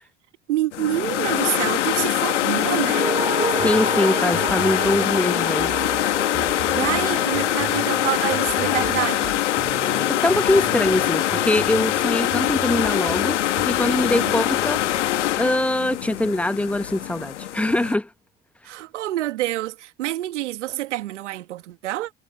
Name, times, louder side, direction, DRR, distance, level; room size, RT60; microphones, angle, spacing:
voice 1, 0.5-3.1 6.5-9.4 14.1-14.4 18.6-22.1, right 15 dB, 85° right, 1.8 m, -27 dB
sound 1, 0.7-17.9, left 13 dB, 90° left, 1.6 m, -23 dB
sound 2, 2.8-11.3 11.6-11.7, right 3 dB, 15° right, 4.3 m, -32 dB
sound 3, 3.5-16.9, right 12 dB, 50° right, 4.1 m, -39 dB
voice 2, 3.6-5.7 10.1-13.4 13.7-14.8 15.4-18.1, left 1 dB, 5° left, 1.1 m, -23 dB
hypercardioid pair, 70°, 35 cm